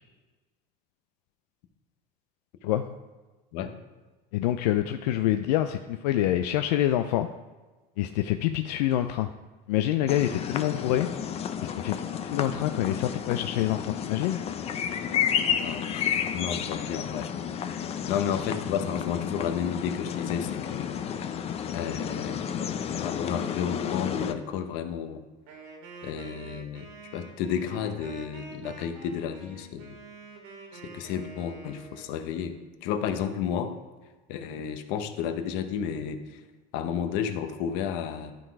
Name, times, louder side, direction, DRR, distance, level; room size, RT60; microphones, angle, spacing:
voice 1, 4.3-7.3 8.0-9.3 9.7-11.1 11.8-12.0 12.3-14.4, left 12 dB, 90° left, 7 dB, 0.4 m, -26 dB
sound 1, 10.1-24.3, left 8 dB, 30° left, 0.5 m, -31 dB
voice 2, 15.6-16.0 16.3-17.3 18.1-21.0 21.7-25.2 26.0-29.9 30.7-33.8 34.3-36.4 36.7-38.3, left 8 dB, 65° left, 8 dB, 0.9 m, -32 dB
Wind instrument woodwind instrument, 25.5-32.1, right 3 dB, 75° right, 2.0 m, -47 dB
11.5 x 3.9 x 4.7 m, 1.2 s
supercardioid pair, 125°, 20 cm